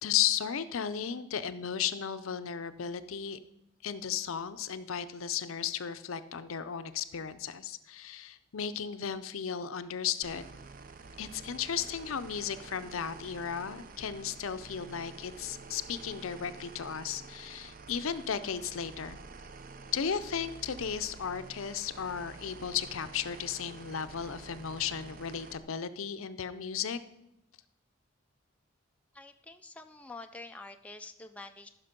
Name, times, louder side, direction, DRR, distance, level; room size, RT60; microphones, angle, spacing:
voice 1, 0.0-3.4 3.8-10.4 11.2-19.2 19.9-27.0, left 8 dB, 75° left, 13 dB, 0.5 m, -35 dB
sound 1, 10.2-25.6, right 4 dB, 40° right, 0.5 m, -49 dB
voice 2, 29.1-31.7, left 3 dB, 5° left, 6 dB, 0.3 m, -47 dB
14.0 x 6.0 x 5.2 m, 0.85 s
head